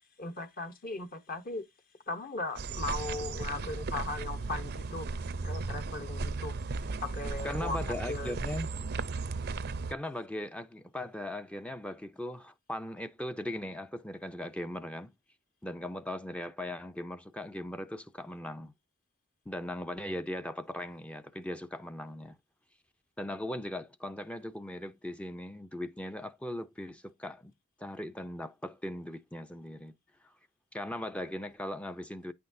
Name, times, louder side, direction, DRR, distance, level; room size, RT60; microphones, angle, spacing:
voice 1, 0.2-1.6 2.1-5.1 5.4-6.6 7.0-8.4, left 2 dB, 40° left, 0.8 m, -38 dB
sound 1, 2.6-9.9, right 3 dB, 50° right, 0.5 m, -36 dB
voice 2, 7.4-8.7 9.9-15.1 15.6-18.7 19.5-22.4 23.2-27.5 27.8-29.9 30.2-30.3 30.7-32.3, left 1 dB, 5° left, 0.4 m, -39 dB
9.1 x 5.8 x 2.6 m
head